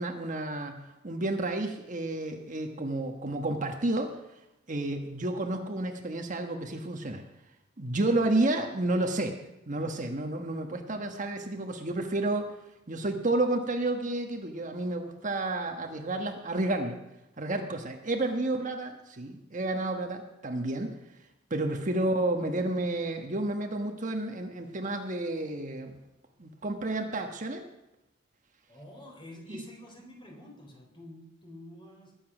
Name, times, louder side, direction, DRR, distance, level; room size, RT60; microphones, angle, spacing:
voice 1, 0.0-4.1 4.7-7.2 7.8-9.3 9.7-12.4 12.9-17.0 17.4-20.9 21.5-26.0 26.4-27.6 29.5-29.6, right 2 dB, 40° right, 4 dB, 1.3 m, -31 dB
voice 2, 28.7-32.1, left 1 dB, 25° left, 1 dB, 3.7 m, -48 dB
20.5 x 8.6 x 6.1 m, 0.91 s
head